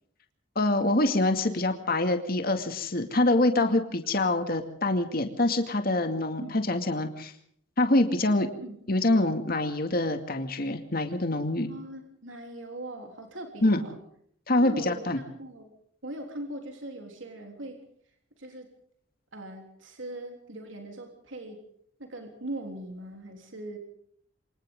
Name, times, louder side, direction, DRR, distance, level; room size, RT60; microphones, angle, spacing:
voice 1, 0.6-7.3 7.8-8.5 8.9-11.7 13.6-13.8 14.5-15.2, left 2 dB, 50° left, 6 dB, 2.3 m, -25 dB
voice 2, 11.6-14.0 14.6-15.0 15.3-15.7 16.0-17.8 18.4-18.7 19.3-21.6 22.0-23.8, right 1 dB, 85° right, 3 dB, 3.5 m, -40 dB
28.5 x 25.0 x 3.8 m, 0.65 s
head